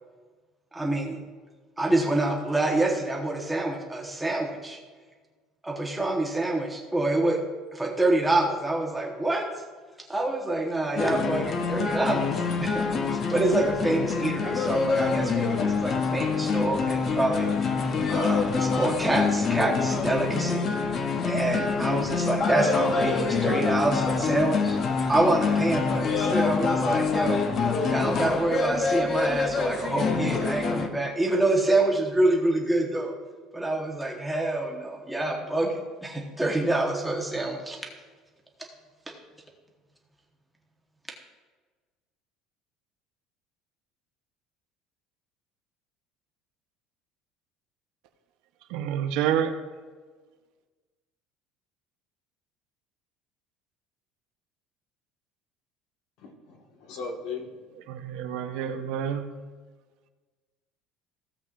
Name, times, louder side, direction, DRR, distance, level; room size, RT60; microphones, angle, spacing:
voice 1, 0.7-1.2 1.8-4.8 5.6-7.4 7.7-9.5 10.1-17.5 18.1-20.7 21.2-24.8 25.1-27.4 27.9-33.1 33.5-37.8, right 2 dB, 5° right, -1 dB, 1.1 m, -26 dB
sound 1, 11.0-30.9, left 5 dB, 30° left, 0.7 m, -26 dB
voice 2, 48.7-49.6 57.9-59.4, right 9 dB, 65° right, 7 dB, 0.8 m, -28 dB
voice 3, 56.2-57.5 58.1-58.4 58.7-58.8, left 4 dB, 60° left, 2 dB, 1.6 m, -38 dB
16.0 x 7.6 x 2.5 m, 1.4 s
cardioid pair, 175°, 0 cm